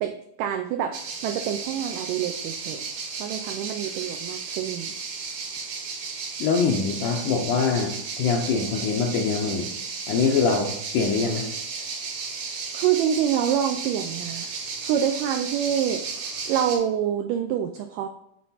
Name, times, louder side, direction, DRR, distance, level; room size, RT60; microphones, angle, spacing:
voice 1, 0.0-2.8 3.2-4.9 12.7-14.5 14.8-16.1 16.5-18.1, right 9 dB, 90° right, 7 dB, 1.9 m, -26 dB
sound 1, 0.9-16.8, right 5 dB, 70° right, 3.5 m, -34 dB
voice 2, 6.4-9.7 10.1-11.5, left 5 dB, 75° left, 1 dB, 1.9 m, -24 dB
8.2 x 4.4 x 4.1 m, 0.76 s
omnidirectional pair, 4.3 m